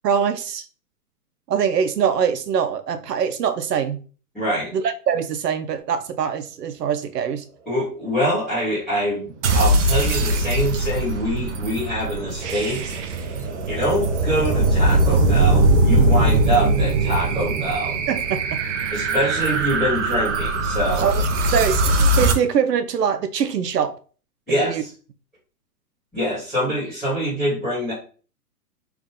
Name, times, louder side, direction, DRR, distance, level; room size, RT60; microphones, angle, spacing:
voice 1, 0.0-0.6 1.5-4.0 4.7-7.4 18.1-18.6 21.0-24.0 24.5-24.8, right 7 dB, 85° right, 0.7 m, -23 dB
voice 2, 4.3-4.7 7.7-12.9 13.6-17.9 18.9-21.1 24.5-24.9 26.1-27.9, equal, ahead, 0.4 m, -24 dB
sound 1, 9.4-22.3, right 2 dB, 50° right, 0.7 m, -20 dB
3.5 x 2.4 x 3.7 m
hypercardioid pair, 150°, 47 cm